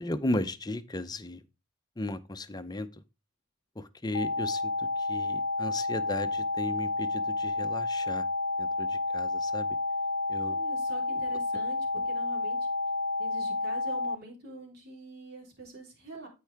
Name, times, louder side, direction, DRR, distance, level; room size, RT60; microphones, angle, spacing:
voice 1, 0.0-1.4 2.0-3.0 3.8-8.2 8.6-9.8 10.3-10.6 11.1-11.2, left 1 dB, 20° left, 0.7 m, -35 dB
sound 1, 4.1-14.2, left 2 dB, 85° left, 0.7 m, -30 dB
voice 2, 10.4-11.8 12.1-12.6 13.2-16.3, right 3 dB, 50° right, 3.5 m, -45 dB
13.5 x 4.7 x 3.5 m
head